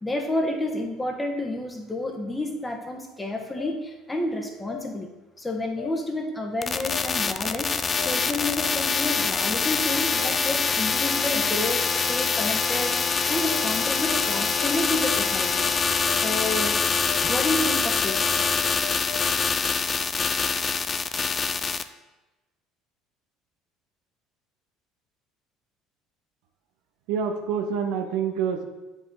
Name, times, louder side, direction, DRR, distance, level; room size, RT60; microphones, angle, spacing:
voice 1, 0.0-5.1 5.4-7.7 8.0-15.6 16.1-16.8 17.2-18.3, left 1 dB, 15° left, 2 dB, 1.4 m, -30 dB
sound 1, 3.6-3.7 4.7-4.8 5.8-5.9 6.9-7.0 8.0-8.1 9.1-9.2 10.2-10.3 11.3-11.4 12.4-12.5 13.5-13.6 14.1-14.2 14.6-14.7 15.1-15.2 15.6-15.7 16.1-16.2 16.6-16.7 17.1-17.2 17.6-17.7 18.1-19.2, left 14 dB, 75° left, 1.8 m, -36 dB
sound 2, 6.6-21.8, left 5 dB, 35° left, 0.5 m, -25 dB
voice 2, 27.1-28.6, right 7 dB, 75° right, 5 dB, 0.8 m, -27 dB
7.4 x 5.1 x 3.9 m, 1.1 s
supercardioid pair, 75°, 0 cm